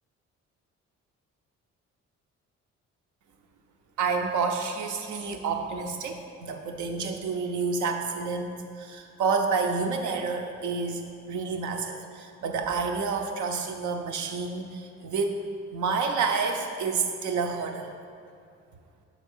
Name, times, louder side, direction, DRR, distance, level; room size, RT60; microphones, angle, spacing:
voice 1, 4.0-15.4 15.7-17.9, right 4 dB, 75° right, 4 dB, 0.7 m, -29 dB
6.2 x 3.7 x 5.4 m, 2.4 s
cardioid pair, 90°, 30 cm